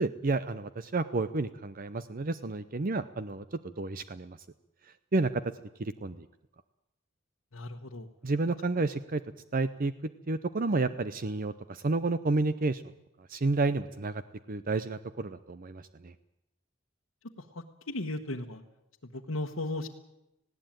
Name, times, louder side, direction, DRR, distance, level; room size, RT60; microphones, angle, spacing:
voice 1, 0.0-4.4 5.1-5.4 5.8-6.3 8.2-9.2 9.5-9.9 10.3-12.8 13.3-14.2 14.5-16.1, right 3 dB, 45° right, 13 dB, 0.7 m, -30 dB
voice 2, 7.5-8.1 17.5-18.6 19.1-19.9, left 2 dB, 70° left, 1 dB, 1.3 m, -36 dB
19.5 x 16.5 x 9.0 m, 0.88 s
head